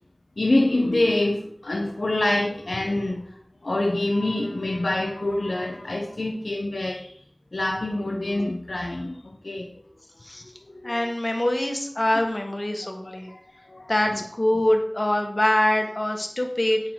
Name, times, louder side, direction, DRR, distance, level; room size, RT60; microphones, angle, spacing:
voice 1, 0.4-3.3 3.6-7.2 7.5-9.7 10.7-11.1 12.1-12.2 13.0-13.2 13.7-14.2, left 2 dB, 90° left, 2 dB, 0.8 m, -26 dB
voice 2, 10.8-13.3 13.9-16.8, left 1 dB, 50° left, 2 dB, 1.5 m, -24 dB
8.7 x 6.6 x 3.7 m, 0.63 s
wide cardioid pair, 40°, 0 cm